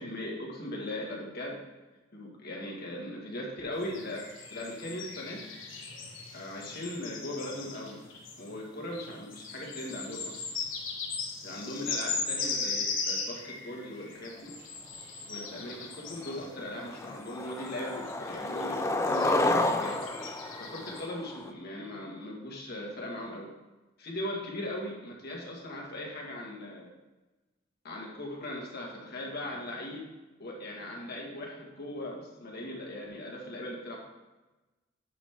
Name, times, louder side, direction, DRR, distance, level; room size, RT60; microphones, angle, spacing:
voice 1, 0.0-1.6 2.1-4.2 4.5-5.5 6.3-8.0 8.4-10.4 11.4-14.5 15.2-20.0 20.6-23.5 24.0-26.9 27.8-30.0 30.4-34.0, left 1 dB, 55° left, -2 dB, 1.6 m, -39 dB
sound 1, 3.8-21.1, left 4 dB, 85° left, 1.4 m, -39 dB
Skateboard, 15.7-15.8 16.2-16.5 16.9-21.5, left 2 dB, 15° left, 0.4 m, -30 dB
8.7 x 5.1 x 3.5 m, 1.1 s
head